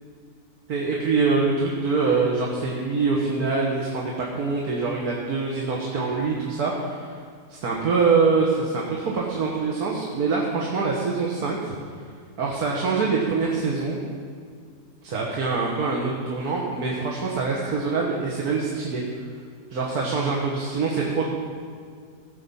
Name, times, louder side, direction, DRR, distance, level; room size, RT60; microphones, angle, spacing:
voice 1, 0.7-7.2 7.5-11.7 12.4-14.0 15.0-19.0 19.7-21.3, right 4 dB, 70° right, -2 dB, 1.8 m, -24 dB
16.0 x 7.5 x 5.5 m, 2.1 s
omnidirectional pair, 1.7 m